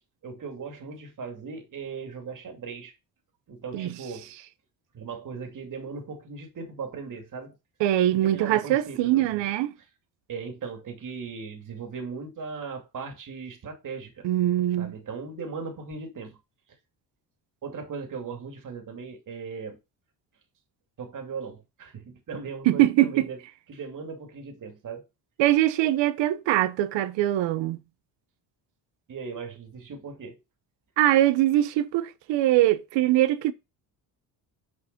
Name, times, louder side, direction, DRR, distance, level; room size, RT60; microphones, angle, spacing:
voice 1, 0.2-2.9 3.5-4.3 4.9-7.5 8.2-9.4 10.3-14.3 14.8-16.4 17.6-19.8 21.0-23.4 23.7-25.0 29.1-30.4, right 5 dB, 45° right, 2.5 m, -38 dB
voice 2, 7.8-9.7 14.2-14.9 22.7-23.3 25.4-27.8 31.0-33.5, right 14 dB, 80° right, 1.0 m, -22 dB
6.8 x 4.9 x 5.3 m
cardioid pair, 105°, 43 cm